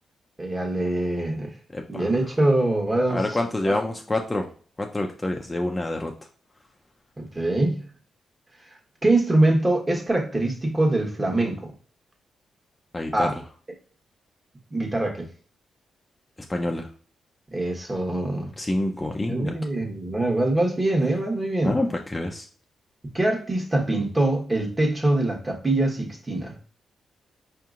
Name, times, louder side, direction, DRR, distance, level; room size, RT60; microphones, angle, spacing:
voice 1, 0.4-1.5 1.9-3.2 3.6-3.8 7.2-7.8 9.0-11.7 13.1-13.3 14.7-15.3 17.5-18.5 19.3-21.8 23.1-26.5, right 2 dB, 20° right, 2 dB, 1.1 m, -23 dB
voice 2, 1.7-2.0 3.1-4.5 4.8-6.1 12.9-13.3 16.5-16.9 18.6-19.5 21.6-22.5, left 1 dB, 20° left, 2 dB, 0.5 m, -27 dB
4.9 x 2.8 x 2.4 m, 0.42 s
cardioid pair, 75°, 0 cm